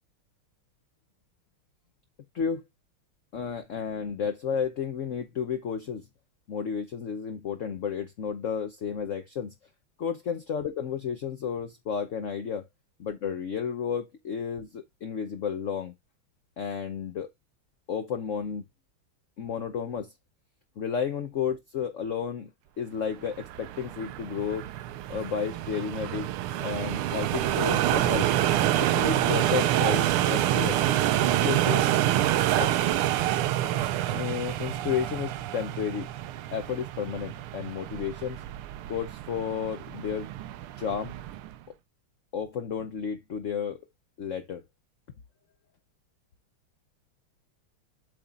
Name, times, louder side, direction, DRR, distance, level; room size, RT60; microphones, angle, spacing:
voice 1, 3.3-6.0 6.5-9.5 10.0-12.6 13.0-15.9 16.6-17.3 17.9-18.6 19.4-20.1 20.8-22.5 22.8-24.7 25.1-26.3 26.6-28.3 28.8-30.8 31.2-31.8 32.6-32.9 34.1-36.1 36.5-38.4 38.9-40.3 40.8-41.1 42.3-43.8 44.2-44.6, left 7 dB, 55° left, 0.8 m, -32 dB
sound 1, 23.3-41.6, right 13 dB, 90° right, 1.5 m, -27 dB
8.2 x 4.3 x 3.7 m
omnidirectional pair, 2.3 m